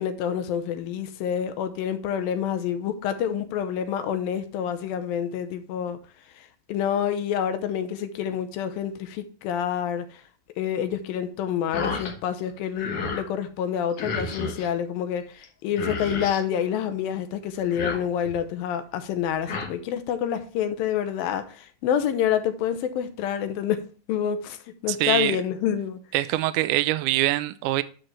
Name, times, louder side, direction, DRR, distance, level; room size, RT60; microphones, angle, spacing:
voice 1, 0.0-6.0 6.4-10.2 10.6-23.8 24.1-26.0, left 9 dB, 80° left, 2.6 m, -28 dB
sound 1, 11.7-12.1 12.5-13.3 14.0-14.7 15.4-15.5 15.7-16.4 17.6-18.4 19.2-19.7, left 4 dB, 55° left, 1.7 m, -32 dB
voice 2, 24.9-25.4 26.1-27.8, right 16 dB, 80° right, 1.9 m, -24 dB
10.5 x 6.3 x 3.3 m
omnidirectional pair, 4.1 m